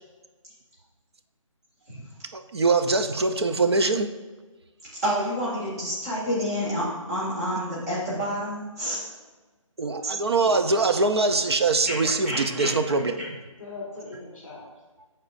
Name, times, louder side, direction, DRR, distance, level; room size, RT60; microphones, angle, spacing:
voice 1, 2.3-4.1 9.8-13.4, right 3 dB, 50° right, 8 dB, 0.5 m, -23 dB
voice 2, 5.0-9.0 11.8-11.9 12.3-12.7, equal, 30° right, -9 dB, 2.0 m, -28 dB
voice 3, 10.1-11.0 13.6-14.7, left 3 dB, 5° left, -13 dB, 0.9 m, -40 dB
13.0 x 4.3 x 2.5 m, 1.3 s
hypercardioid pair, 175°, 17 cm